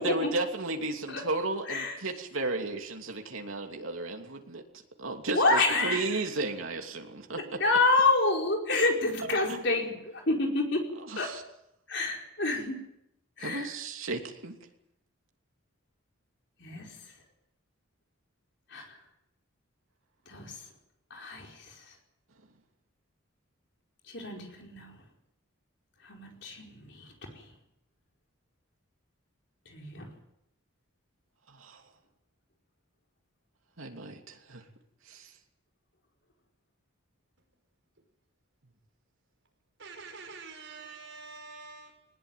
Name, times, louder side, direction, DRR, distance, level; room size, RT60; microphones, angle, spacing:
voice 1, 0.0-4.6 5.0-7.6 9.5-9.6 11.1-11.4 13.4-14.5 31.5-31.8 33.8-34.6 35.0-35.3, right 2 dB, 80° right, 3 dB, 2.9 m, -34 dB
voice 2, 5.3-6.0 7.4-10.8 11.2-11.3 11.9-12.8 13.4-13.7 16.6-16.9 18.7-19.0 20.3-20.6 21.1-21.8 24.1-24.9 26.0-27.5 29.7-30.1, left 2 dB, 55° left, 1 dB, 4.9 m, -28 dB
voice 3, 39.8-42.1, right 4 dB, 65° right, 4 dB, 5.5 m, -46 dB
20.0 x 20.0 x 9.4 m, 0.81 s
head